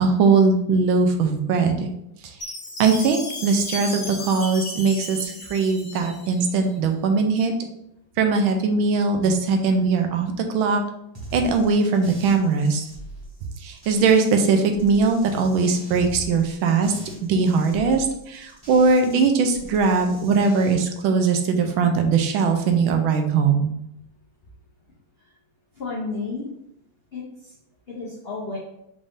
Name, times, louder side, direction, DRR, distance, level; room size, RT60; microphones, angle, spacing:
voice 1, 0.0-1.9 2.2-2.3 2.8-7.5 8.2-10.8 11.3-12.9 13.6-23.7, right 4 dB, 80° right, 5 dB, 1.4 m, -20 dB
Chime, 2.4-6.5, left 2 dB, 45° left, 1.0 m, -35 dB
sound 1, 11.1-14.4 14.7-19.2 19.5-20.7, equal, 20° right, 0.7 m, -42 dB
voice 2, 25.8-26.5 27.1-27.5 27.9-28.6, left 3 dB, 75° left, -5 dB, 0.5 m, -32 dB
5.2 x 2.6 x 3.5 m, 0.79 s
omnidirectional pair, 2.2 m